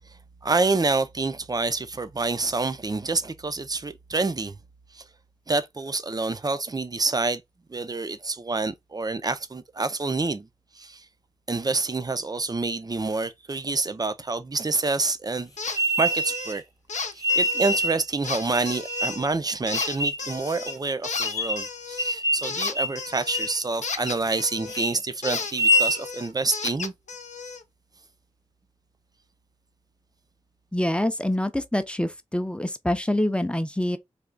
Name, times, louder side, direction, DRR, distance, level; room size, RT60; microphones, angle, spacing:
voice 1, 0.4-4.6 4.9-5.0 5.5-7.4 7.7-10.5 10.8-11.1 11.5-16.6 17.1-26.9, right 3 dB, 30° right, 0.5 m, -27 dB
sound 1, 15.6-15.8 16.1-16.5 16.9-17.8 18.2-19.2 19.7-20.8 21.0-24.9 25.2-27.6, left 4 dB, 75° left, 0.7 m, -33 dB
sound 2, 15.7-16.6 17.2-18.0 18.5-19.3 19.7-20.2 20.7-20.8 21.2-21.7 22.0-22.5 22.7-23.0 23.3-23.6 24.0-24.4 24.7-24.9 25.4-26.0, equal, 30° left, 0.9 m, -25 dB
voice 2, 30.7-34.0, left 1 dB, 10° left, 0.6 m, -26 dB
3.3 x 2.3 x 3.7 m
wide cardioid pair, 60°, 12 cm